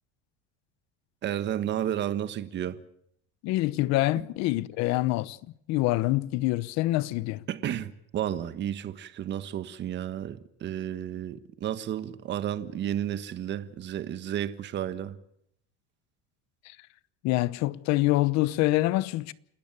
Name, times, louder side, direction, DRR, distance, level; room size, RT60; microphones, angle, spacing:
voice 1, 1.2-2.8 7.5-15.2, right 10 dB, 35° right, 1.5 m, -32 dB
voice 2, 3.4-5.4 5.7-7.4 16.7-16.8 17.2-19.3, left 18 dB, 60° left, 1.0 m, -26 dB
29.0 x 14.0 x 8.8 m
cardioid pair, 155°, 30 cm